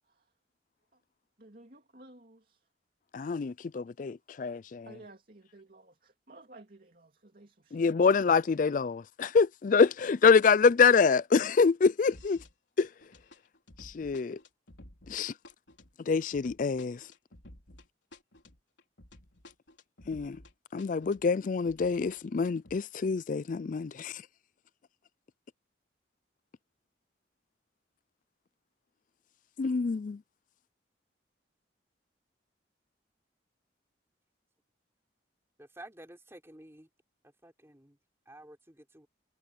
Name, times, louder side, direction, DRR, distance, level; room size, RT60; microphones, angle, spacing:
voice 1, 1.4-2.6 4.8-7.9, right 2 dB, 50° right, 2.8 m, -54 dB
voice 2, 3.1-4.9 7.7-12.4 12.8-12.9 13.8-14.4 15.1-15.3 16.1-17.0 20.1-20.4 20.7-24.1 29.6-30.2, left 5 dB, 45° left, 0.4 m, -26 dB
sound 1, 12.1-12.5 12.8-20.5 20.8-22.8, left 1 dB, 80° left, 3.9 m, -54 dB
voice 3, 35.6-36.9 37.4-38.0 38.3-39.1, right 1 dB, 15° right, 3.6 m, -51 dB
head